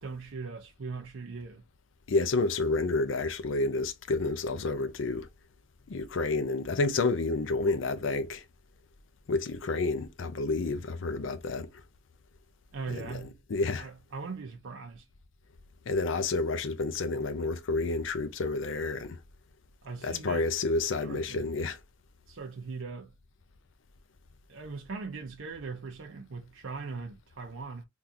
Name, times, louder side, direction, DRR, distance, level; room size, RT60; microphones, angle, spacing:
voice 1, 0.0-1.6 12.7-13.4 13.8-15.1 19.8-20.4 21.0-21.5 22.3-23.2 24.5-27.8, right 4 dB, 85° right, 0.6 m, -40 dB
voice 2, 2.1-5.3 5.9-8.4 9.3-11.7 12.9-13.2 13.5-13.9 15.9-19.2 20.0-21.8, left 3 dB, 75° left, 0.5 m, -29 dB
3.7 x 2.4 x 2.6 m
head